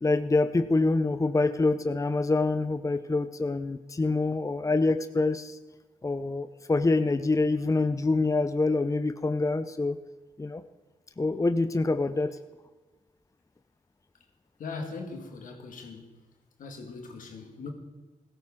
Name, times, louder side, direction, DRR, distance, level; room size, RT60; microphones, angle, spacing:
voice 1, 0.0-5.6 6.0-10.0 10.4-10.6 11.2-12.4, left 3 dB, 25° left, 0.7 m, -26 dB
voice 2, 14.6-16.2 16.6-17.7, left 4 dB, 80° left, 1.9 m, -40 dB
16.0 x 13.5 x 3.7 m
supercardioid pair, 50°, 14 cm